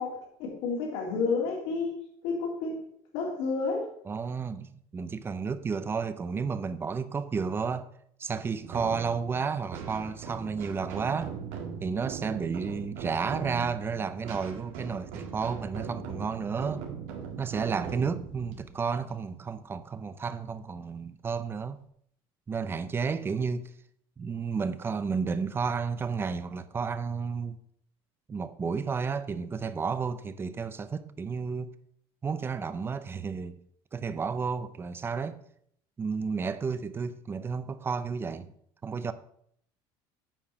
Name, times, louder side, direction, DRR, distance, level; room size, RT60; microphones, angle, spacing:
voice 1, 0.0-1.9 2.2-2.8 3.1-3.9, left 4 dB, 80° left, 3.1 m, -30 dB
voice 2, 4.1-7.9 8.2-11.3 11.8-16.9 17.4-21.8 22.5-23.7 24.2-27.6 28.3-31.7 32.2-33.6 33.9-35.4 36.0-38.5 38.8-39.1, right 5 dB, 20° right, 0.5 m, -32 dB
sound 1, 8.6-20.0, right 6 dB, 75° right, 1.9 m, -40 dB
8.8 x 4.7 x 5.8 m
cardioid pair, 140°, 11 cm